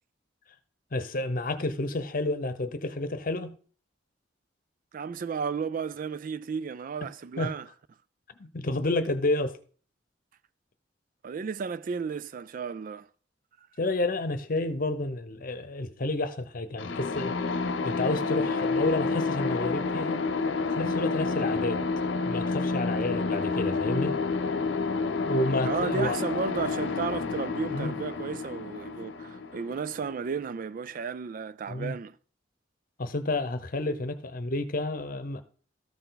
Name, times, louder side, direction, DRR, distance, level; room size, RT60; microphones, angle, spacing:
voice 1, 0.9-3.6 7.4-7.5 8.4-9.6 13.8-17.3 17.8-20.3 20.7-21.8 22.2-24.2 25.3-26.2 27.7-27.9 31.7-31.9 33.0-35.4, left 2 dB, 50° left, 0.9 m, -30 dB
voice 2, 4.9-7.7 11.2-13.1 25.6-32.1, right 6 dB, 45° right, 0.3 m, -33 dB
sound 1, 16.8-30.5, left 4 dB, 75° left, 0.6 m, -29 dB
13.5 x 4.5 x 4.0 m
head